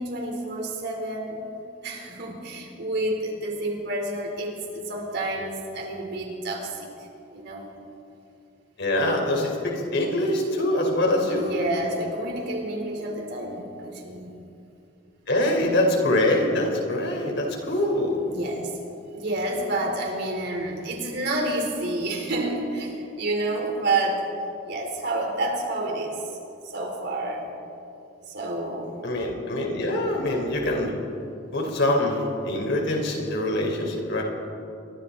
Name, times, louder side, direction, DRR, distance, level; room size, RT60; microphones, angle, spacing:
voice 1, 0.0-1.4 1.8-7.7 11.3-14.3 18.2-18.8 19.1-24.2 24.6-26.4 26.6-27.5 28.2-28.9, right 2 dB, 55° right, 0 dB, 4.5 m, -29 dB
voice 2, 8.8-11.5 15.3-18.2 29.0-30.9 31.5-34.2, left 1 dB, 60° left, 0 dB, 5.0 m, -24 dB
29.0 x 24.0 x 4.4 m, 2.7 s
head